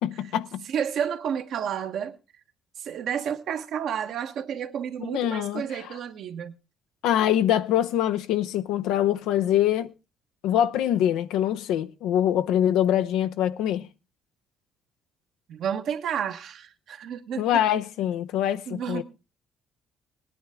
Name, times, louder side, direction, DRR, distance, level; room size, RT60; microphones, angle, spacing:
voice 1, 0.0-0.7 5.1-5.6 7.0-9.9 10.4-13.9 17.4-19.0, left 11 dB, 85° left, 0.7 m, -24 dB
voice 2, 0.6-2.2 2.8-6.5 15.5-17.6 18.7-19.0, right 8 dB, 70° right, 1.2 m, -31 dB
18.5 x 10.0 x 3.6 m
cardioid pair, 85°, 0 cm